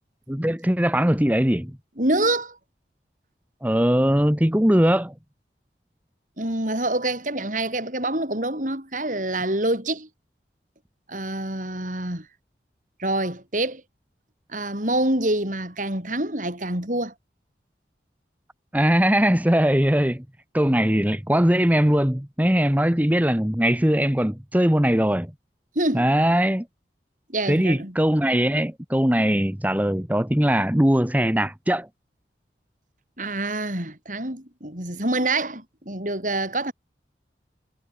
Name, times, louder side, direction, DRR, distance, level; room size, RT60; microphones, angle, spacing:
voice 1, 0.3-1.7 3.6-5.1 18.7-20.2 20.5-25.3 25.9-26.6 27.5-31.9, equal, 10° right, 1.3 m, -20 dB
voice 2, 2.0-2.6 6.4-10.1 11.1-12.3 13.0-13.8 14.5-17.1 25.8-26.1 27.3-28.0 33.2-36.7, right 2 dB, 45° right, 7.1 m, -26 dB
head